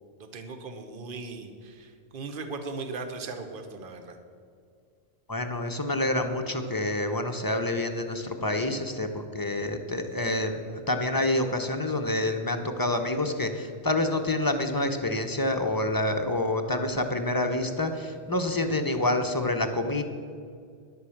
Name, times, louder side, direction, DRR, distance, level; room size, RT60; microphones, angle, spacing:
voice 1, 0.2-4.2, right 3 dB, 50° right, 7 dB, 1.2 m, -38 dB
voice 2, 5.3-20.0, left 1 dB, 20° left, 6 dB, 0.7 m, -27 dB
11.0 x 8.2 x 7.1 m, 2.2 s
omnidirectional pair, 1.2 m